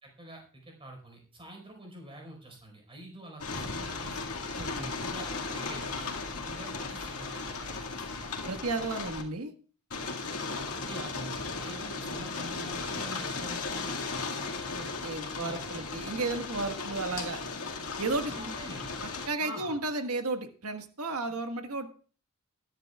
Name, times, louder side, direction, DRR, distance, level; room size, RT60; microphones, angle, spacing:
voice 1, 0.0-4.3 4.8-8.4 10.5-14.6 15.2-15.8 18.3-18.9 19.4-19.8, right 1 dB, 25° right, 2 dB, 4.7 m, -46 dB
sound 1, 3.4-9.2 9.9-19.3, left 4 dB, 70° left, 2.0 m, -36 dB
voice 2, 4.5-4.9 8.4-9.5 14.6-17.4 18.0-18.5 19.3-21.9, right 3 dB, 75° right, 6 dB, 1.5 m, -33 dB
21.0 x 11.0 x 2.4 m, 0.39 s
head